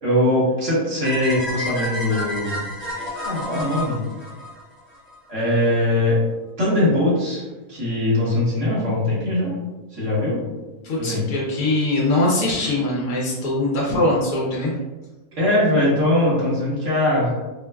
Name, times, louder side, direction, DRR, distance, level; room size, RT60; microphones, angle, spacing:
voice 1, 0.0-2.6 3.1-4.0 5.3-6.2 6.6-9.5 9.9-10.4 11.0-11.2 15.4-17.3, left 1 dB, 50° right, -8 dB, 1.5 m, -21 dB
sound 1, 1.0-5.2, left 1 dB, 10° right, 0.7 m, -30 dB
voice 2, 10.8-14.7, left 2 dB, 65° left, -5 dB, 1.0 m, -22 dB
4.3 x 2.1 x 2.2 m, 1.1 s
omnidirectional pair, 1.7 m